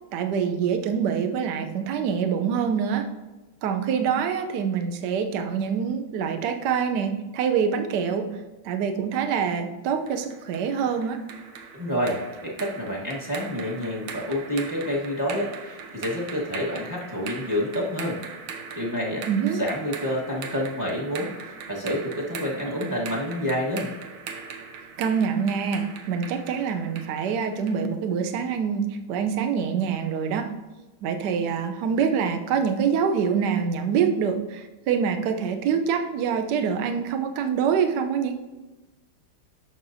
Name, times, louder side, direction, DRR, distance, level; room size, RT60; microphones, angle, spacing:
voice 1, 0.1-3.1 3.6-8.4 8.6-11.2 19.3-19.6 25.0-30.5 31.0-38.4, right 7 dB, 65° right, 7 dB, 1.1 m, -25 dB
sound 1, 10.1-27.9, right 5 dB, 85° right, 1.7 m, -40 dB
voice 2, 11.7-18.2 18.8-19.2 19.6-23.9, equal, 10° right, -4 dB, 0.9 m, -28 dB
10.5 x 6.6 x 2.6 m, 1.1 s
omnidirectional pair, 2.3 m